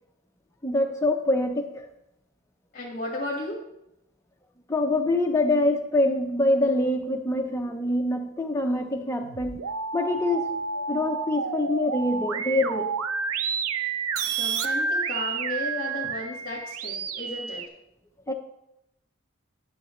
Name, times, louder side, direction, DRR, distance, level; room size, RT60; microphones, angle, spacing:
voice 1, 0.6-1.8 4.7-9.6 9.9-12.9 18.3-18.4, left 1 dB, 15° left, 3 dB, 0.7 m, -25 dB
voice 2, 2.7-3.6 14.2-17.6, left 2 dB, 40° left, -4 dB, 1.7 m, -34 dB
sound 1, 9.2-17.7, right 5 dB, 85° right, 0.6 m, -30 dB
12.0 x 7.5 x 3.2 m, 0.84 s
head